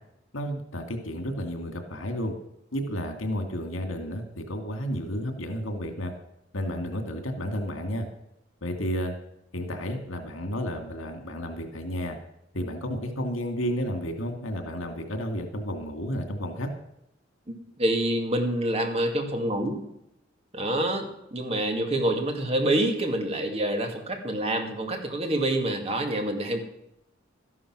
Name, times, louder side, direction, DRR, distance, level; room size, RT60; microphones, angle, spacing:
voice 1, 0.3-2.3 2.7-6.1 6.5-8.1 8.6-9.1 9.5-12.2 12.5-16.7, equal, 85° left, 5 dB, 2.3 m, -32 dB
voice 2, 17.5-19.8 20.5-26.6, right 1 dB, 30° right, 4 dB, 2.3 m, -27 dB
13.0 x 11.0 x 6.2 m, 0.80 s
head